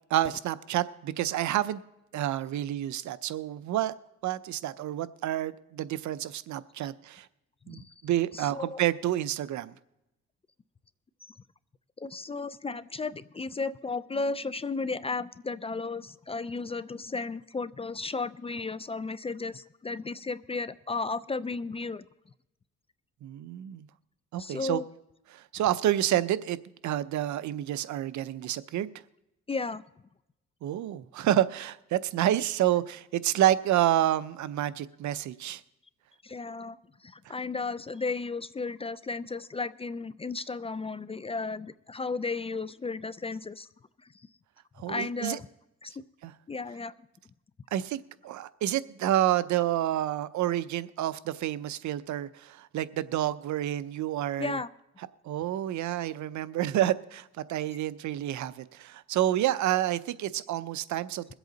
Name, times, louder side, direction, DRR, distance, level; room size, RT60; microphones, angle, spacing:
voice 1, 0.1-1.8 2.1-3.9 4.2-7.3 7.7-9.7 23.2-23.9 24.3-24.8 25.3-26.6 26.8-28.9 30.6-35.6 44.8-45.4 46.2-46.3 47.7-54.6 55.2-61.3, right 12 dB, 70° right, 0.6 m, -29 dB
voice 2, 8.3-8.8 11.2-11.3 12.0-22.0 24.4-24.9 29.5-29.8 36.2-43.7 44.0-44.3 44.9-45.4 45.8-46.0 46.5-46.9 54.4-54.7, left 4 dB, 20° left, 0.4 m, -34 dB
22.5 x 8.0 x 3.9 m
cardioid pair, 90°, 30 cm